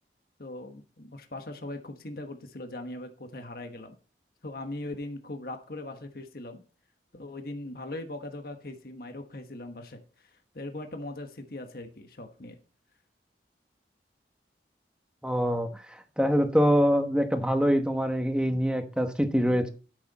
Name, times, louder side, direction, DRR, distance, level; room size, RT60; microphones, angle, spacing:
voice 1, 0.4-4.0 4.4-6.6 7.1-12.6, left 1 dB, 55° left, 1.3 m, -40 dB
voice 2, 15.2-19.7, equal, 5° right, 1.1 m, -25 dB
12.5 x 6.8 x 4.2 m
head